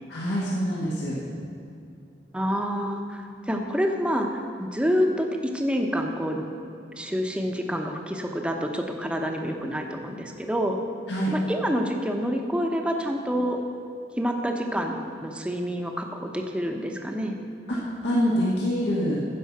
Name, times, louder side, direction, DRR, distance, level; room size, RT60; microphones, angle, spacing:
voice 1, 0.1-1.2 11.1-11.3 17.7-17.8 18.0-19.2, equal, 80° left, -5 dB, 1.7 m, -25 dB
voice 2, 2.3-6.5 7.0-10.8 11.3-13.6 14.2-17.3, equal, 5° right, 3 dB, 0.8 m, -27 dB
15.0 x 5.5 x 6.0 m, 2.6 s
head